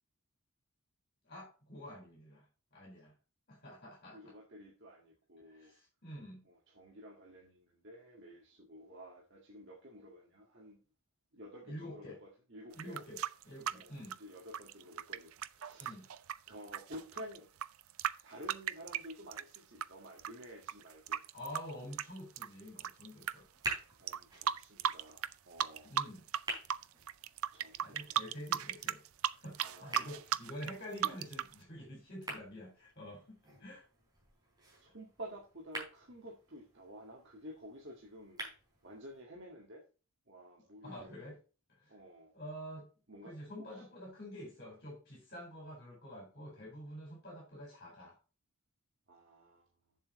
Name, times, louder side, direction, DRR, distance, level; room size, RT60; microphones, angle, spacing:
voice 1, 1.2-2.4 2.7-3.1 3.5-4.3 5.5-6.4 11.6-12.2 12.7-13.2 13.4-14.1 15.8-16.1 21.3-23.5 25.8-26.2 27.8-29.0 29.3-33.8 40.8-41.4 41.7-42.0 42.3-42.9 43.2-48.2, equal, 45° left, 4.2 m, -48 dB
voice 2, 4.1-5.7 6.4-10.8 11.3-13.0 13.7-16.1 16.5-17.5 18.2-21.2 24.0-26.0 27.5-28.2 29.6-30.2 34.8-38.4 38.8-39.8 40.3-41.3 41.9-42.3 43.1-43.8 49.1-49.7, equal, 55° right, 1.9 m, -52 dB
sound 1, 12.7-19.9 20.2-23.3 23.6-23.8 24.1-25.3 25.6-26.4 26.7-31.5, right 9 dB, 75° right, 0.5 m, -36 dB
sound 2, 23.2-39.2, right 1 dB, 20° right, 4.1 m, -49 dB
7.4 x 7.3 x 4.2 m
head